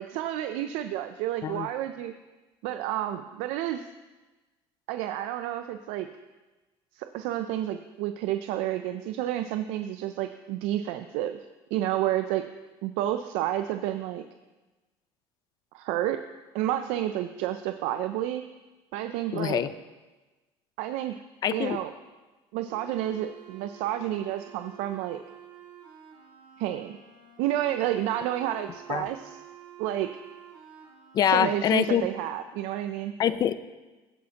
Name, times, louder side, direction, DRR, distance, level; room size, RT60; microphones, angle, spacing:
voice 1, 0.0-2.1 2.6-3.9 4.9-6.1 6.9-11.4 11.7-12.5 12.8-14.2 15.7-16.2 16.5-18.4 18.9-19.6 20.8-21.1 21.5-21.9 22.5-25.2 26.6-27.0 27.4-29.4 29.8-30.1 31.3-33.1, right 12 dB, 85° right, 9 dB, 0.4 m, -30 dB
voice 2, 19.3-19.7 21.4-21.8 28.9-29.1 31.1-32.0 33.2-33.5, left 9 dB, 35° left, 14 dB, 0.4 m, -24 dB
sound 1, 22.7-32.0, right 10 dB, 60° right, 2.9 m, -50 dB
16.0 x 8.5 x 2.9 m, 1.2 s
cardioid pair, 150°, 11 cm